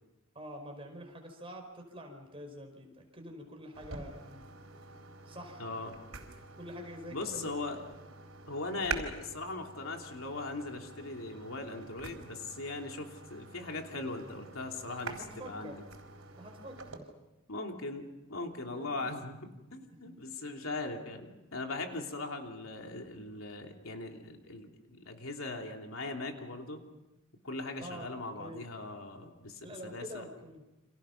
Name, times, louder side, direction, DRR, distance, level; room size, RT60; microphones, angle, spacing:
voice 1, 0.4-4.5 5.3-5.6 6.6-7.7 14.8-15.7 16.4-16.8 18.7-19.3 20.0-20.1 27.8-28.1 28.4-28.6 29.6-30.6, equal, 25° right, 3 dB, 5.0 m, -46 dB
sound 1, 3.7-17.0, right 4 dB, 85° right, 4.0 m, -46 dB
voice 2, 5.6-5.9 7.1-7.8 8.5-15.8 17.5-26.8 27.4-30.3, left 2 dB, 80° left, 2 dB, 3.1 m, -40 dB
29.5 x 26.5 x 5.9 m, 0.99 s
head